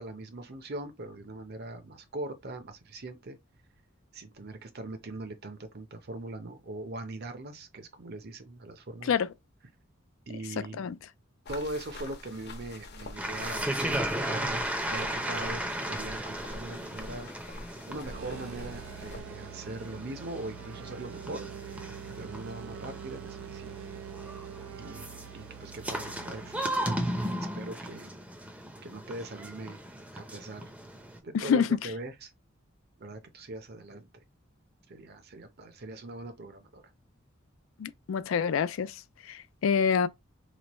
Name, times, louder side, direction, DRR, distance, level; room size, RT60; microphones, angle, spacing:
voice 1, 0.0-3.4 4.1-9.2 10.3-10.8 11.5-17.3 17.9-21.5 22.2-23.8 24.8-25.1 25.3-27.0 27.5-28.2 28.8-29.8 30.1-30.7 31.2-32.3 33.0-34.1 34.9-36.9, right 2 dB, 50° right, 0.7 m, -41 dB
sound 1, 11.5-19.2, left 2 dB, 55° left, 0.8 m, -46 dB
sound 2, 13.2-31.2, right 1 dB, 5° right, 0.6 m, -36 dB
sound 3, 17.9-27.4, right 9 dB, 80° right, 0.3 m, -45 dB
voice 2, 31.3-31.7 37.8-40.1, left 6 dB, 75° left, 0.4 m, -27 dB
3.1 x 2.2 x 4.1 m
head